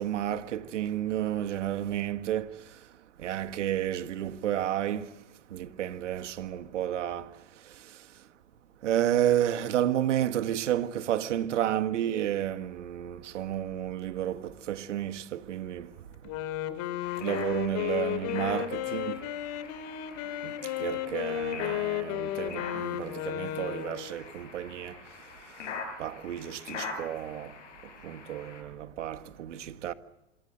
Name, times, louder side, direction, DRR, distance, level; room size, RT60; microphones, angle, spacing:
voice 1, 0.0-2.9 3.2-5.2 5.5-8.2 8.8-16.0 17.2-19.3 20.4-25.7 26.0-29.9, right 11 dB, 75° right, 1.7 m, -31 dB
Wind instrument woodwind instrument, 16.1-24.1, left 12 dB, 50° left, 2.9 m, -33 dB
sound 1, 17.0-28.6, left 4 dB, 75° left, 6.1 m, -44 dB
27.0 x 23.0 x 7.9 m
hypercardioid pair, 95°, 37 cm